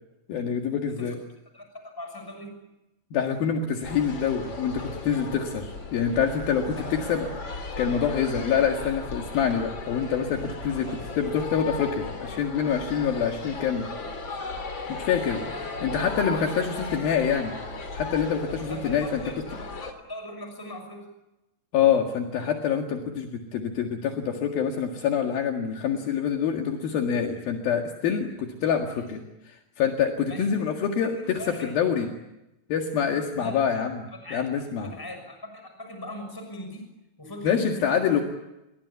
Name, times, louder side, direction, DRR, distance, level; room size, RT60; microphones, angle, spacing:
voice 1, 0.3-1.2 3.1-7.3 7.8-13.9 14.9-19.2 21.7-29.2 29.5-32.1 32.7-33.9 34.3-34.9 37.4-38.2, left 7 dB, 70° left, 2 dB, 3.7 m, -26 dB
voice 2, 1.5-2.7 6.8-6.9 10.7-11.0 15.3-15.9 16.2-16.7 18.5-21.1 28.9-29.1 30.3-30.6 31.2-31.7 33.4-33.6 34.1-34.5 34.8-36.9 37.2-38.2, left 1 dB, 5° left, 5 dB, 6.3 m, -40 dB
sound 1, 3.8-19.9, left 3 dB, 30° left, 3.4 m, -36 dB
30.0 x 22.5 x 8.3 m, 0.95 s
omnidirectional pair, 4.4 m